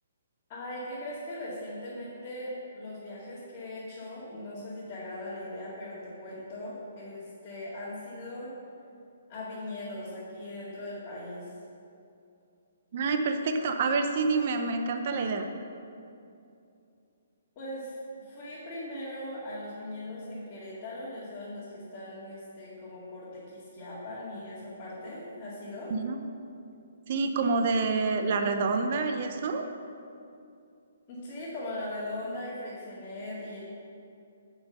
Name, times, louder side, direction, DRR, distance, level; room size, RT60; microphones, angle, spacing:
voice 1, 0.5-8.5 9.3-11.5 17.6-25.9 31.1-33.6, left 1 dB, 30° left, -10 dB, 2.4 m, -39 dB
voice 2, 12.9-15.5 25.9-26.2 27.1-29.6, right 4 dB, 45° right, 6 dB, 0.8 m, -27 dB
7.3 x 6.3 x 6.8 m, 2.6 s
hypercardioid pair, 160°, 0 cm